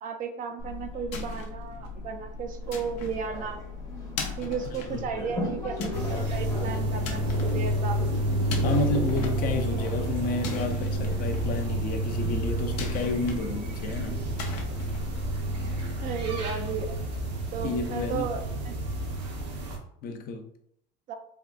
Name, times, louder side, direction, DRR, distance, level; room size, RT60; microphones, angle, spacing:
voice 1, 0.0-3.6 4.4-8.0 15.6-15.7 16.0-17.0 17.5-18.8 21.1-21.2, right 6 dB, 40° right, 0.4 m, -34 dB
sound 1, 0.6-15.9, left 3 dB, 85° left, 0.7 m, -38 dB
sound 2, 2.6-10.1, left 1 dB, 15° left, 0.8 m, -39 dB
voice 2, 4.7-5.0 6.0-6.1 8.6-14.2 17.6-18.3 20.0-20.4, left 3 dB, 45° left, 0.5 m, -31 dB
sound 3, 5.9-19.8, right 1 dB, 90° right, 0.9 m, -30 dB
3.5 x 2.4 x 2.3 m
supercardioid pair, 110°, 21 cm